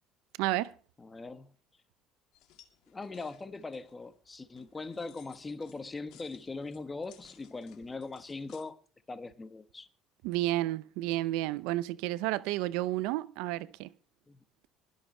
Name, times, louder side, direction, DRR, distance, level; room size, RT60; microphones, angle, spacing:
voice 1, 0.4-0.7 10.2-13.9, right 16 dB, 80° right, 0.5 m, -31 dB
voice 2, 1.0-1.5 2.9-8.8 9.1-9.9 14.3-14.4, left 3 dB, 20° left, 1.4 m, -41 dB
sound 1, 2.3-8.6, left 11 dB, 70° left, 2.2 m, -62 dB
21.0 x 7.4 x 4.4 m
supercardioid pair, 100°, 0 cm